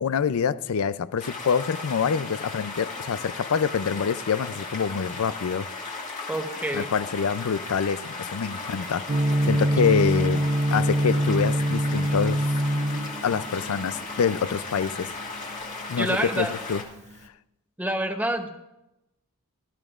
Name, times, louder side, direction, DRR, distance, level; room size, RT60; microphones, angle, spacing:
voice 1, 0.0-5.7 6.7-9.0 9.4-10.4 10.7-12.5 13.2-15.1 15.9-16.8, left 6 dB, 70° left, 0.4 m, -26 dB
sound 1, 1.2-16.8, left 3 dB, 35° left, 1.9 m, -36 dB
voice 2, 6.3-6.9 16.0-16.5 17.8-18.5, right 1 dB, 5° right, 0.8 m, -27 dB
Gong, 9.1-17.2, equal, 30° right, 0.5 m, -26 dB
17.5 x 13.0 x 2.5 m
head